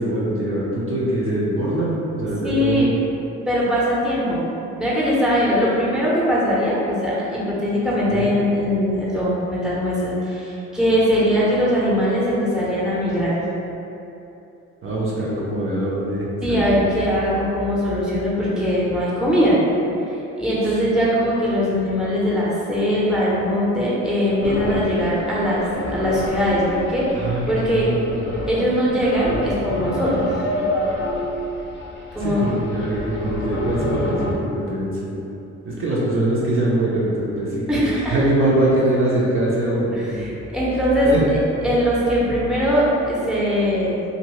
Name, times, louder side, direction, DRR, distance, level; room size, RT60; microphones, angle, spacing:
voice 1, 0.0-3.0 8.1-8.3 14.8-16.9 20.6-20.8 27.1-28.0 32.2-35.2 35.6-37.8 38.1-40.3 41.0-41.2 42.3-42.4, right 1 dB, 45° right, -6 dB, 0.6 m, -23 dB
voice 2, 2.4-2.9 3.5-4.5 4.8-13.3 16.4-19.6 20.1-27.9 28.5-30.2 32.1-32.4 37.7-38.1 39.9-44.0, equal, ahead, -8 dB, 0.8 m, -21 dB
sound 1, 24.4-34.3, left 1 dB, 40° left, 0.6 m, -28 dB
2.7 x 2.6 x 3.1 m, 2.9 s
cardioid pair, 90°, 30 cm